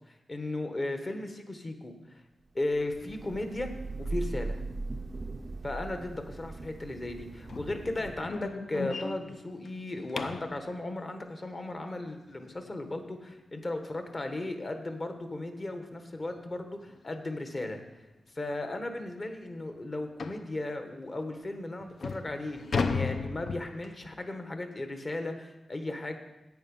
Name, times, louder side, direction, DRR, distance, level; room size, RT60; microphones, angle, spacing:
voice 1, 0.1-1.9 2.5-3.7 4.0-4.6 5.6-17.8 18.3-26.2, left 2 dB, 30° left, 6 dB, 1.1 m, -36 dB
Thunder / Rain, 2.7-8.5, right 2 dB, 35° right, 0.5 m, -39 dB
sound 1, 7.5-10.6 13.4-13.5 14.0-14.2 14.5-14.6 15.1-15.2 16.3-16.4 16.8-17.0 17.6-17.7 18.1-18.2 18.7-18.8 20.2-20.5 21.2-21.3 21.8-24.1, left 4 dB, 60° left, 0.5 m, -35 dB
9.4 x 8.7 x 5.4 m, 0.97 s
wide cardioid pair, 160°, 0 cm